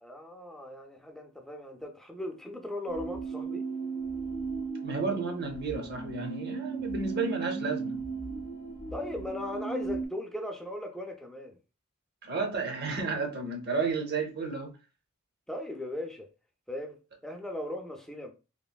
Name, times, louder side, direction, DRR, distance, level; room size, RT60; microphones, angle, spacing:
voice 1, 0.0-3.7 8.9-11.6 15.5-16.3 16.7-18.3, left 1 dB, ahead, 0.4 m, -38 dB
sound 1, 2.9-10.1, right 4 dB, 80° left, 0.6 m, -36 dB
voice 2, 4.8-8.0 12.2-14.7, right 4 dB, 50° right, 0.7 m, -32 dB
3.1 x 2.5 x 2.2 m
head